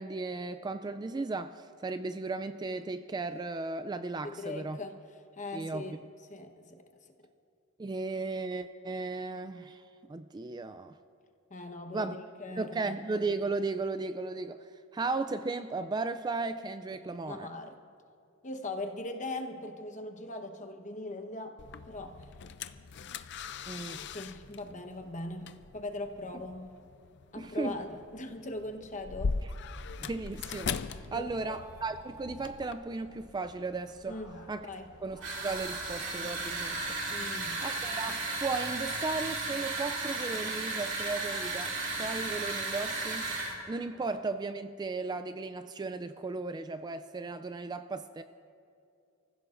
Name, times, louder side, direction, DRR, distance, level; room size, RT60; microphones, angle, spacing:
voice 1, 0.0-4.8 5.5-6.0 7.8-9.8 10.1-10.9 11.9-12.1 12.6-17.5 23.7-24.0 27.4-27.8 29.4-29.5 30.0-30.8 31.1-34.2 34.5-34.7 35.0-37.0 37.6-43.3 43.7-48.2, right 3 dB, 20° right, 11 dB, 0.3 m, -35 dB
voice 2, 4.2-5.0 5.3-5.9 6.3-6.8 11.5-13.0 17.1-17.7 18.4-22.3 24.1-26.8 27.3-29.4 31.1-31.6 34.1-34.9 37.1-37.6, left 2 dB, 35° left, 5 dB, 1.1 m, -40 dB
sound 1, 21.6-32.7, left 5 dB, 55° left, 0.5 m, -40 dB
sound 2, 29.6-38.6, left 1 dB, 85° left, 3.1 m, -54 dB
sound 3, 35.2-43.6, right 3 dB, 60° right, 2.7 m, -34 dB
30.0 x 15.5 x 2.6 m, 2.4 s
head